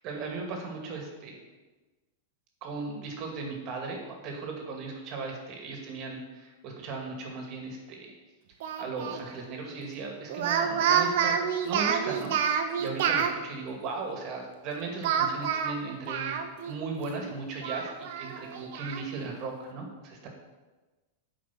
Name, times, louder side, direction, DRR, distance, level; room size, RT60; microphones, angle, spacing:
voice 1, 0.0-1.4 2.6-8.1 8.8-11.4 11.6-20.3, right 4 dB, 45° right, 1 dB, 2.2 m, -37 dB
Speech, 8.6-9.2 10.3-13.3 15.0-16.8 17.1-17.2 17.6-19.0, right 8 dB, 65° right, 0.9 m, -28 dB
8.6 x 5.1 x 6.0 m, 1.2 s
hypercardioid pair, 110°, 0 cm